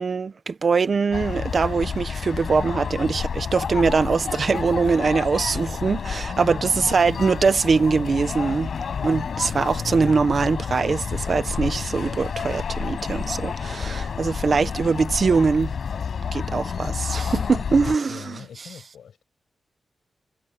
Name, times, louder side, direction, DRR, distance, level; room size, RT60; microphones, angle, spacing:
voice 1, 0.0-8.7 9.0-15.7 16.3-18.4, right 4 dB, 40° right, 1.1 m, -22 dB
sound 1, 1.1-18.0, left 6 dB, 55° left, 5.0 m, -30 dB
voice 2, 6.5-7.3 8.9-9.5 18.1-19.2, left 8 dB, 85° left, 5.9 m, -41 dB
wide cardioid pair, 165°, 0 cm